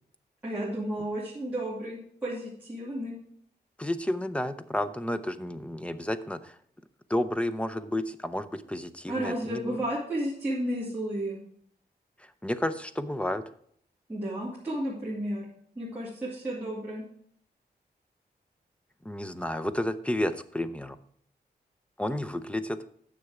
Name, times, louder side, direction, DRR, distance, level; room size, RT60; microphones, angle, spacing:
voice 1, 0.4-3.1 9.1-11.4 14.1-15.4 15.8-17.0, right 1 dB, 10° right, -8 dB, 2.5 m, -32 dB
voice 2, 3.8-6.5 7.1-9.8 12.4-13.4 19.0-21.0 22.0-22.8, left 1 dB, 5° left, 11 dB, 0.5 m, -31 dB
9.6 x 6.8 x 4.8 m, 0.64 s
wide cardioid pair, 140°, 17 cm